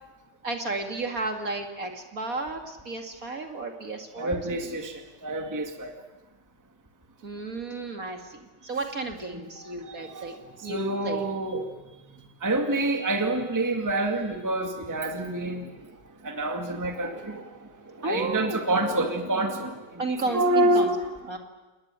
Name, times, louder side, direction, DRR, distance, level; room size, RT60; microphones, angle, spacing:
voice 1, 0.4-4.8 7.2-10.4 10.6-11.2 18.0-18.6 20.0-20.9 21.3-21.4, right 2 dB, 40° right, 4 dB, 2.6 m, -33 dB
voice 2, 4.2-5.9 9.3-11.7 12.4-15.7 16.2-21.2, right 2 dB, 10° right, 5 dB, 2.0 m, -28 dB
29.0 x 20.0 x 9.0 m, 1.2 s
omnidirectional pair, 2.3 m